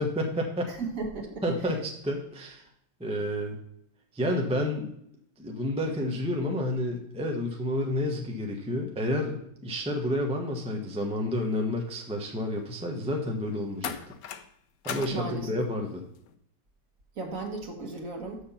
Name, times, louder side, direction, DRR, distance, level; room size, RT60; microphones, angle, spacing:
voice 1, 0.0-0.7 1.4-2.7 3.0-3.6 4.1-4.9 5.4-14.1 14.8-16.0, left 1 dB, 5° right, 1 dB, 0.5 m, -30 dB
voice 2, 0.7-1.4 15.1-15.5 17.1-18.4, right 3 dB, 45° right, 2 dB, 1.6 m, -35 dB
sound 1, 11.4-11.7 13.8-14.5 14.8-15.2 16.2-16.4, left 8 dB, 70° left, 0.9 m, -38 dB
6.9 x 6.7 x 5.7 m, 0.73 s
omnidirectional pair, 2.1 m